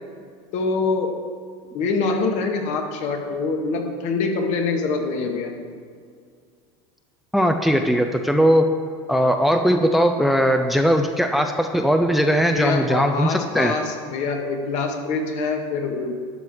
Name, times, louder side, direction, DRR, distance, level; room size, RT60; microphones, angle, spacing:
voice 1, 0.5-1.2 1.7-5.6 12.5-16.1, left 4 dB, 55° left, 3 dB, 1.9 m, -25 dB
voice 2, 7.3-8.7 9.1-13.8, equal, ahead, 6 dB, 0.6 m, -19 dB
12.0 x 5.5 x 7.8 m, 2.1 s
supercardioid pair, 110°, 15 cm